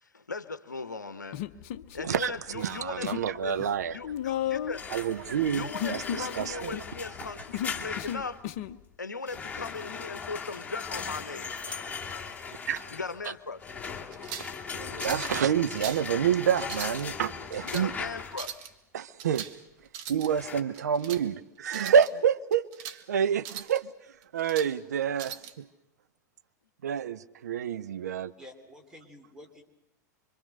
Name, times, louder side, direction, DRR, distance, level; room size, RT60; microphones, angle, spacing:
voice 1, 0.0-1.4 1.9-3.6 3.9-4.8 5.5-8.4 9.0-11.6 12.9-13.8 17.6-18.7, left 4 dB, 75° left, 0.9 m, -38 dB
Human voice, 1.3-2.3 2.6-3.3 3.6-8.8, left 11 dB, 45° left, 0.9 m, -35 dB
voice 2, 2.0-4.0 4.9-6.8 11.7-11.8 12.7-12.8 14.7-17.9 18.9-19.5 20.1-23.9 24.3-25.7 26.8-28.3, right 8 dB, 60° right, 0.9 m, -28 dB
sound 1, 4.7-8.4 9.3-18.5 20.3-20.6, left 5 dB, 15° left, 2.6 m, -38 dB
sound 2, 14.1-14.6 15.0-15.3 15.7-16.1 16.6-17.0 17.5-17.9 18.3-18.7 19.2-19.6 19.9-20.3 20.7-21.2 21.7-22.1 22.5-23.0 23.4-23.8 24.2-24.7 25.2-25.5, right 9 dB, 45° right, 1.9 m, -40 dB
voice 3, 28.4-29.6, left 1 dB, 10° right, 3.5 m, -49 dB
26.0 x 24.5 x 6.5 m
figure-of-eight pair, 95°, 10 cm